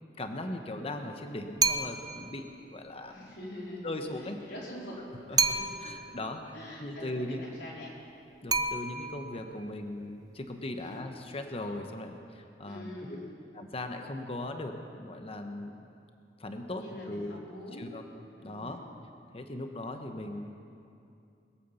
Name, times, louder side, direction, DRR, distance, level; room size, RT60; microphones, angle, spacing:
voice 1, 0.2-3.4 3.8-4.4 5.3-6.5 6.8-7.4 8.4-12.9 13.5-15.8 16.4-17.4 17.7-18.0 18.4-18.8 19.3-20.5, left 1 dB, 35° left, 5 dB, 1.0 m, -39 dB
Glass ding, 1.6-2.2 5.4-6.1 8.5-9.3, right 4 dB, 20° right, 0.6 m, -29 dB
voice 2, 3.1-3.9 4.2-4.9 5.3-5.9 6.5-7.9 10.8-11.0 12.6-13.3 16.8-17.9 18.4-18.8, left 1 dB, 75° left, -5 dB, 4.3 m, -44 dB
21.5 x 8.4 x 7.0 m, 2.6 s
head